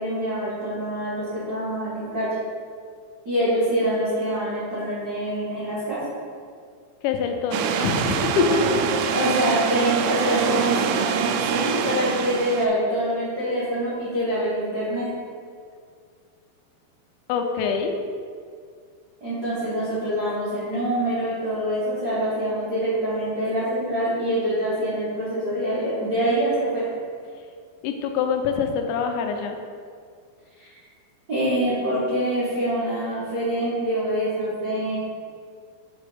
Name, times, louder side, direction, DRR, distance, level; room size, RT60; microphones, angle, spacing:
voice 1, 0.0-2.3 3.2-6.0 9.1-15.1 19.2-26.9 30.6-30.7 31.3-35.0, right 1 dB, 60° right, -12 dB, 1.0 m, -25 dB
voice 2, 7.0-9.0 17.3-17.9 27.8-29.6, left 5 dB, 90° left, 4 dB, 3.0 m, -24 dB
sound 1, 7.5-12.7, right 7 dB, 85° right, 2.7 m, -25 dB
7.2 x 4.2 x 5.2 m, 2.2 s
omnidirectional pair, 5.1 m